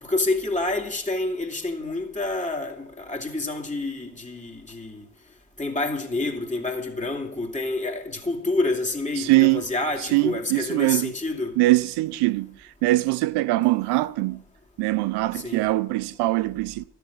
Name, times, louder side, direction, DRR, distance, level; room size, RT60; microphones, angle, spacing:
voice 1, 0.0-5.1 5.6-11.5 15.3-15.6, left 2 dB, 15° left, 2.6 m, -28 dB
voice 2, 9.2-9.6 10.1-11.1 11.6-12.5 12.8-14.4 14.8-16.8, right 20 dB, 70° right, 0.5 m, -22 dB
13.5 x 7.2 x 8.5 m
hypercardioid pair, 45°, 42 cm